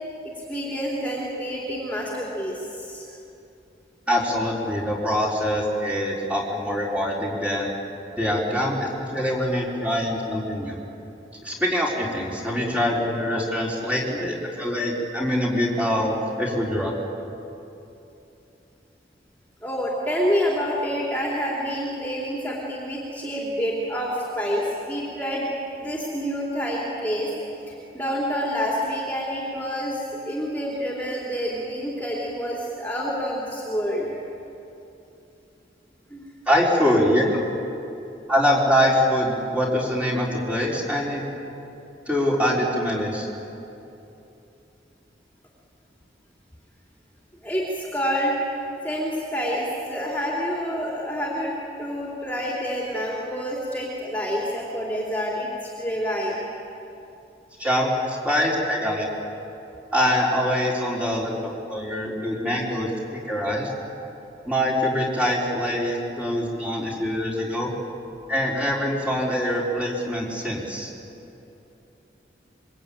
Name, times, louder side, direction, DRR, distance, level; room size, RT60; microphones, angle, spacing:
voice 1, 0.4-3.1 14.1-14.3 19.6-25.5 25.8-27.3 27.7-34.1 36.1-36.3 47.4-48.4 48.8-51.5 51.8-56.4, equal, 10° left, -4 dB, 3.5 m, -28 dB
voice 2, 4.1-7.7 8.2-10.8 11.4-16.9 36.5-37.4 38.3-41.2 42.1-43.3 57.6-59.1 59.9-61.3 61.7-63.7 64.5-67.7 68.3-70.9, equal, 10° right, -4 dB, 4.4 m, -24 dB
26.0 x 23.5 x 9.0 m, 2.8 s
head